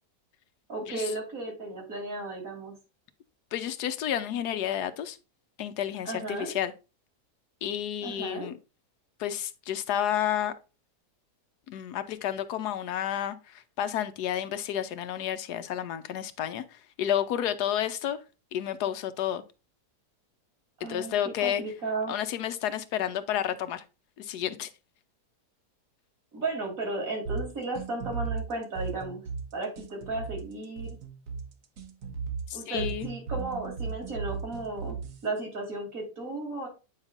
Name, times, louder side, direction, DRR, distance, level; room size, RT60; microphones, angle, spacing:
voice 1, 0.7-2.7 6.0-6.5 8.0-8.5 20.8-21.1 21.4-22.2 26.3-29.2 29.5-31.0 32.5-35.0 35.2-36.7, right 2 dB, 55° right, 3.7 m, -34 dB
voice 2, 3.5-5.2 5.6-6.7 7.6-8.5 9.2-10.5 11.7-18.2 18.5-19.4 20.9-21.6 22.1-23.8 24.2-24.7 32.5-33.1, left 10 dB, 75° left, 1.2 m, -31 dB
sound 1, 27.3-35.3, right 5 dB, 70° right, 1.6 m, -36 dB
8.8 x 5.7 x 2.5 m
omnidirectional pair, 1.8 m